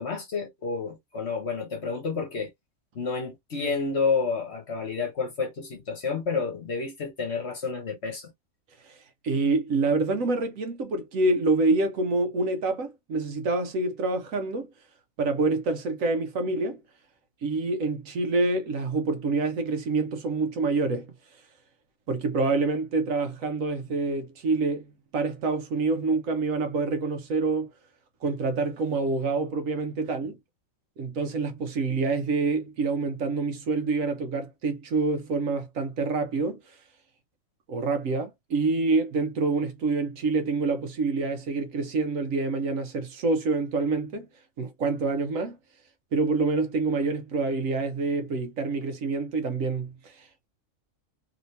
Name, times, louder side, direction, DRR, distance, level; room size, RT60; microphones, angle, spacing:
voice 1, 0.0-2.5 2.9-8.3, left 4 dB, 55° left, 1.2 m, -30 dB
voice 2, 9.2-14.7 15.2-16.8 17.4-21.1 22.1-27.7 28.2-30.4 31.0-36.7 37.7-44.3 44.6-45.6 46.1-50.5, right 3 dB, 75° right, 1.1 m, -27 dB
3.1 x 2.7 x 3.2 m
omnidirectional pair, 1.4 m